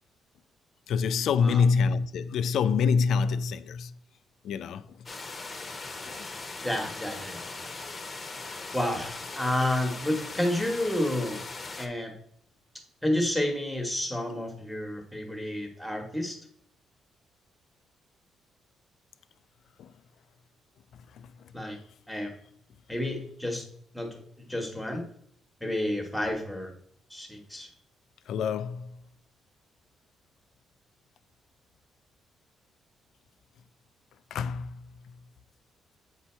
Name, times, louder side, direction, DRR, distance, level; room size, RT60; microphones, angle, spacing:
voice 1, 0.9-3.9 4.4-5.1 6.0-6.1 19.8-19.9 21.1-21.3 28.3-29.0 34.3-34.9, left 5 dB, 70° left, 0.3 m, -26 dB
sound 1, 5.1-11.9, left 3 dB, 30° left, 0.9 m, -39 dB
voice 2, 6.6-7.7 8.7-11.4 11.8-12.1 13.0-16.4 21.5-21.8 22.1-22.3 22.9-23.7 23.9-25.0 25.6-26.7 27.1-27.7, left 1 dB, ahead, 1.4 m, -30 dB
8.1 x 2.8 x 4.4 m
cardioid pair, 90°, 0 cm